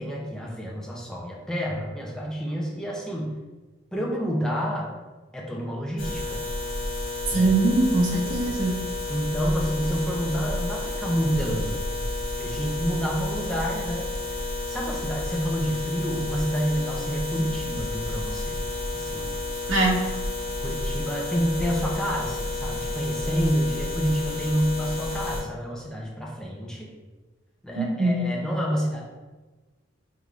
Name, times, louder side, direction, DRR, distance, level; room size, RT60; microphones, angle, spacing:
voice 1, 0.0-3.4 3.9-4.9 5.3-6.4 7.3-7.5 9.1-11.8 12.4-14.4 14.7-18.6 18.9-19.3 20.6-26.9 27.6-29.0, equal, 5° left, -3 dB, 0.5 m, -28 dB
sound 1, 6.0-25.4, left 2 dB, 85° left, 1.2 m, -31 dB
voice 2, 7.3-8.7 19.7-20.0 27.8-28.2, right 2 dB, 85° right, -3 dB, 1.1 m, -22 dB
5.2 x 3.1 x 2.4 m, 1.2 s
head